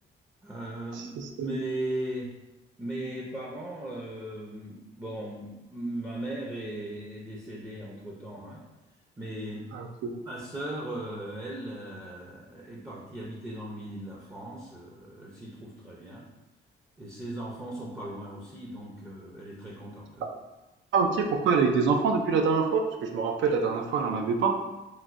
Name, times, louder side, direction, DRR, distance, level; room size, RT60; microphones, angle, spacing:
voice 1, 0.4-1.1 1.4-2.3 2.8-8.6 9.2-9.7 10.3-16.2 17.0-20.3, right 1 dB, 15° right, -4 dB, 0.5 m, -38 dB
voice 2, 0.9-1.5 9.7-10.1 20.9-24.6, right 5 dB, 70° right, 4 dB, 0.4 m, -26 dB
3.1 x 2.6 x 2.5 m, 1.0 s
cardioid pair, 90°, 20 cm